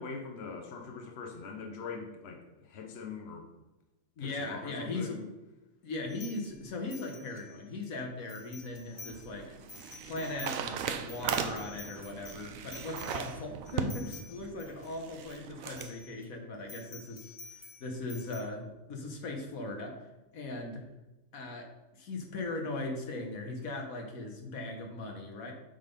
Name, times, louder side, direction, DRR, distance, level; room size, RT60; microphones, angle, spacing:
voice 1, 0.0-3.5 4.2-5.2, left 5 dB, 55° left, 3 dB, 1.1 m, -42 dB
voice 2, 4.2-5.2 5.8-9.6 10.1-17.3 17.8-20.0 20.3-20.9 21.3-21.7 22.0-25.5, left 2 dB, 85° left, 2 dB, 1.6 m, -39 dB
sound 1, 6.1-7.9 8.2-9.3 9.6-15.4 15.7-16.3 16.7-18.4, left 4 dB, 30° left, 0.9 m, -50 dB
sound 2, 8.6-15.9, right 8 dB, 75° right, 1.0 m, -38 dB
7.2 x 4.0 x 5.2 m, 1.0 s
omnidirectional pair, 1.4 m